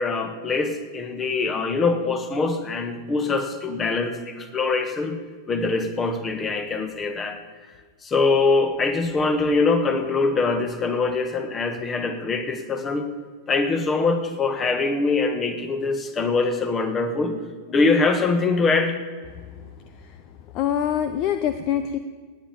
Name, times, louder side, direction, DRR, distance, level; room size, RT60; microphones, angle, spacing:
voice 1, 0.0-5.2 5.5-7.4 8.0-13.0 13.5-17.4 17.7-19.0, left 3 dB, 20° left, 9 dB, 1.7 m, -23 dB
voice 2, 19.6-20.2 20.5-22.0, left 9 dB, 40° left, 11 dB, 0.7 m, -26 dB
18.5 x 9.0 x 7.1 m, 1.6 s
figure-of-eight pair, 90°, 0 cm